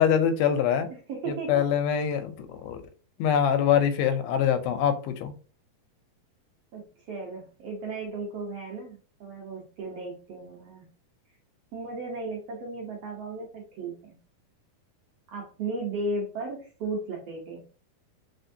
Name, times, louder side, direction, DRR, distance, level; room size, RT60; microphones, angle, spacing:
voice 1, 0.0-0.9 1.5-2.8 3.2-5.3, left 8 dB, 90° left, 8 dB, 2.5 m, -24 dB
voice 2, 0.9-1.6 6.7-10.8 11.7-14.1 15.3-17.6, right 3 dB, 80° right, -1 dB, 1.4 m, -35 dB
4.3 x 4.3 x 2.7 m, 0.39 s
omnidirectional pair, 4.1 m